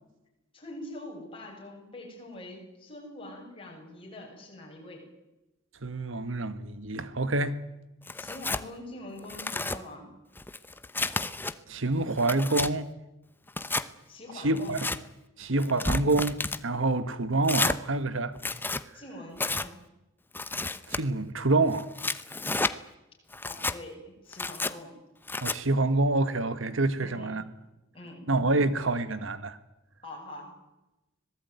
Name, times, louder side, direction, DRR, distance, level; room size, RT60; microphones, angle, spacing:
voice 1, 0.5-5.1 8.2-10.1 14.1-14.8 18.9-19.8 23.4-25.0 27.0-27.3 27.9-28.3 30.0-30.5, left 1 dB, 25° left, 7.7 m, -44 dB
voice 2, 5.8-7.6 11.7-12.9 14.4-14.9 15.4-18.3 20.9-21.9 25.4-27.4 28.3-29.6, right 2 dB, 65° right, 1.5 m, -27 dB
Tearing, 8.1-8.6 9.2-9.8 10.4-11.5 12.0-12.7 13.5-13.9 14.6-15.0 15.6-16.6 17.4-17.8 18.3-18.8 19.4-19.7 20.3-21.0 21.7-22.7 23.3-23.8 24.3-24.7 25.3-25.6, left 3 dB, 10° left, 0.8 m, -31 dB
25.5 x 19.0 x 9.5 m
head